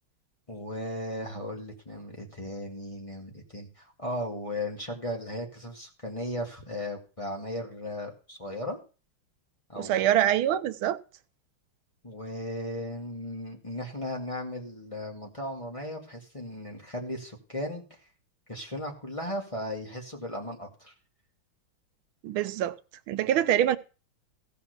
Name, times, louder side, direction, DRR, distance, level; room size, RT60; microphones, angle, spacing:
voice 1, 0.5-8.8 9.7-10.1 12.0-17.8 18.5-20.9, left 1 dB, 15° left, 2.2 m, -36 dB
voice 2, 9.8-11.0 22.2-22.8 23.1-23.8, right 11 dB, 90° right, 1.6 m, -25 dB
15.5 x 5.8 x 6.7 m
omnidirectional pair, 2.2 m